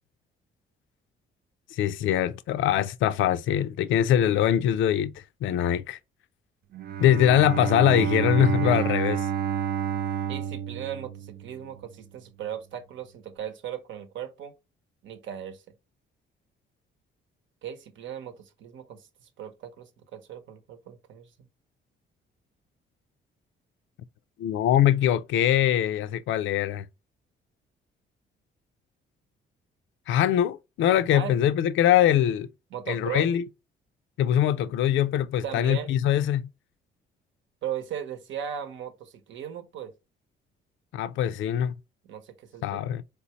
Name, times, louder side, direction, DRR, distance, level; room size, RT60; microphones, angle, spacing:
voice 1, 1.7-6.0 7.0-9.2 24.4-26.8 30.1-32.5 32.9-33.4 34.2-36.5 40.9-41.7 42.6-43.0, left 10 dB, 75° left, 0.4 m, -23 dB
Bowed string instrument, 6.7-11.8, right 9 dB, 55° right, 0.4 m, -29 dB
voice 2, 10.3-14.5 15.0-15.6 17.6-21.3 31.1-31.4 32.7-33.3 35.4-35.9 37.6-39.9 42.0-42.8, right 9 dB, 70° right, 0.9 m, -37 dB
4.2 x 3.4 x 2.9 m
cardioid pair, 90°, 20 cm